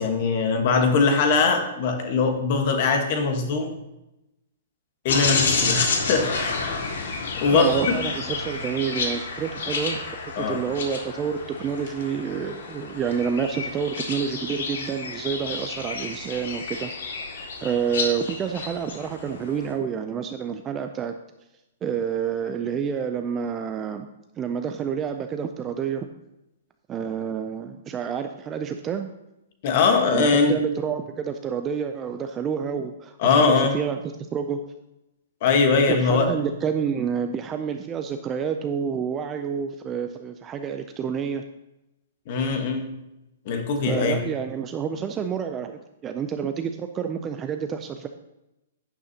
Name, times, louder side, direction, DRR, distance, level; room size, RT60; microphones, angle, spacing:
voice 1, 0.0-3.7 5.0-6.6 7.4-8.0 10.4-10.6 29.6-30.6 33.2-33.8 35.4-36.3 42.3-43.0 43.4-44.2, left 4 dB, 30° left, 5 dB, 1.2 m, -21 dB
sound 1, 5.1-19.7, left 4 dB, 65° left, 2.0 m, -30 dB
voice 2, 7.5-10.1 10.3-16.9 17.6-21.1 21.8-24.1 24.4-26.1 26.9-29.1 30.1-34.7 35.9-41.5 43.9-48.1, right 7 dB, 10° right, 7 dB, 0.3 m, -28 dB
11.5 x 9.3 x 2.8 m, 0.93 s
hypercardioid pair, 180°, 0 cm